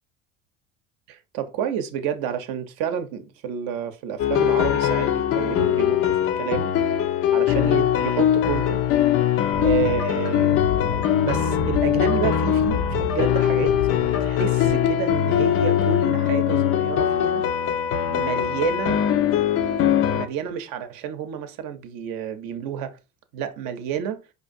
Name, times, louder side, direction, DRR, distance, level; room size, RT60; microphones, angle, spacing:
voice 1, 1.1-6.7 7.3-8.8 9.6-13.7 14.0-17.5 18.1-19.0 20.1-23.0 23.3-24.2, right 8 dB, 50° right, 0.7 m, -30 dB
sound 1, 4.2-20.3, left 10 dB, 35° left, 0.4 m, -21 dB
sound 2, 9.5-14.7, left 7 dB, 70° left, 0.9 m, -32 dB
4.8 x 2.4 x 2.5 m
hypercardioid pair, 75°, 43 cm